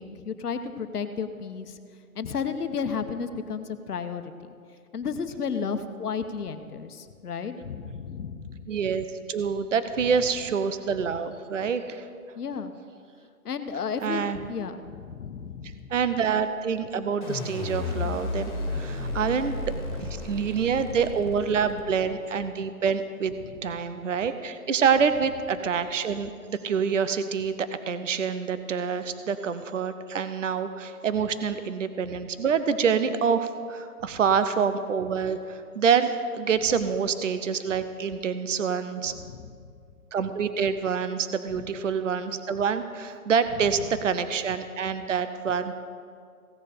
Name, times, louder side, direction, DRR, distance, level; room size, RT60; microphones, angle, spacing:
voice 1, 0.0-1.8 2.1-4.6 4.9-8.7 12.3-12.7 13.4-15.9 18.9-19.2 20.2-20.4 39.1-39.5, left 6 dB, 80° left, 9 dB, 1.1 m, -33 dB
voice 2, 8.7-12.1 14.0-14.4 15.6-19.5 20.0-23.3 23.6-39.1 40.1-45.7, right 6 dB, 55° right, 11 dB, 0.7 m, -26 dB
sound 1, 17.2-22.3, left 3 dB, 30° left, 2.5 m, -33 dB
16.5 x 6.9 x 5.1 m, 2.2 s
hypercardioid pair, 180°, 45 cm